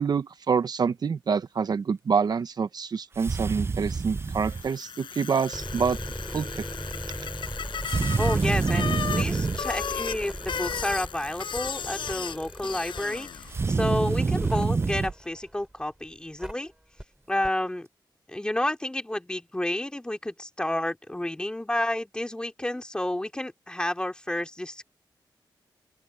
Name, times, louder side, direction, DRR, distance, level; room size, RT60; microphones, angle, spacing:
voice 1, 0.0-6.0 6.3-6.6, right 6 dB, 55° right, 0.8 m, -27 dB
sound 1, 3.2-4.7 7.8-9.6 13.5-15.1, right 4 dB, 30° right, 0.5 m, -26 dB
Bicycle, 4.3-13.7, left 7 dB, 85° left, 7.5 m, -35 dB
sound 2, 5.4-15.8 16.4-16.5 17.0-17.1 17.4-17.5, right 1 dB, 10° right, 4.3 m, -39 dB
voice 2, 8.2-16.7 17.3-17.9 18.3-24.8, left 1 dB, 10° left, 2.8 m, -30 dB
open air
wide cardioid pair, 105°, 8 cm